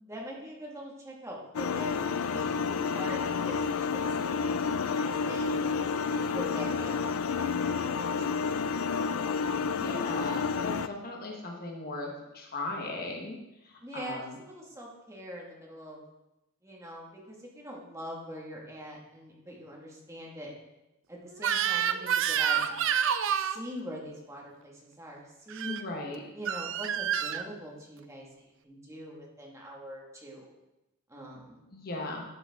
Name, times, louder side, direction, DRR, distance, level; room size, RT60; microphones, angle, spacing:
voice 1, 0.1-7.8 8.1-8.7 9.4-9.8 13.8-16.0 16.6-20.5 21.1-22.9 23.4-25.8 26.3-28.3 28.6-30.5 31.1-31.7, equal, 15° right, -3 dB, 1.9 m, -43 dB
sound 1, 1.5-10.9, left 5 dB, 70° left, 0.4 m, -30 dB
voice 2, 9.7-13.4 13.6-14.4 25.6-26.2 31.7-32.2, left 2 dB, 45° left, 0 dB, 1.3 m, -37 dB
Crying sobbing / Screech, 21.4-23.6 25.5-25.8 26.5-27.4, right 8 dB, 60° right, 0.5 m, -28 dB
12.0 x 7.0 x 3.7 m, 0.95 s
head